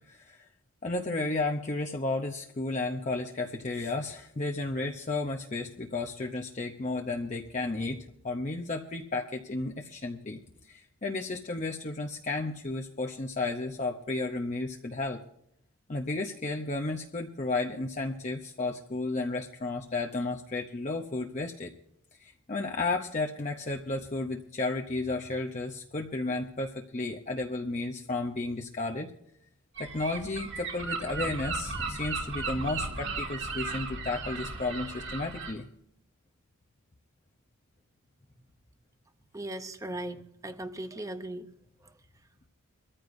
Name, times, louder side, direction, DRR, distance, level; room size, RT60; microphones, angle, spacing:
voice 1, 0.1-0.4 0.8-15.2 15.9-21.7 22.2-29.1 29.8-35.7, left 2 dB, 35° left, 2 dB, 0.7 m, -33 dB
Gull seagull, 29.7-35.5, right 3 dB, 55° right, 2.5 m, -35 dB
voice 2, 39.3-41.5, right 1 dB, 15° right, 9 dB, 0.7 m, -38 dB
23.5 x 14.5 x 2.6 m, 0.74 s
head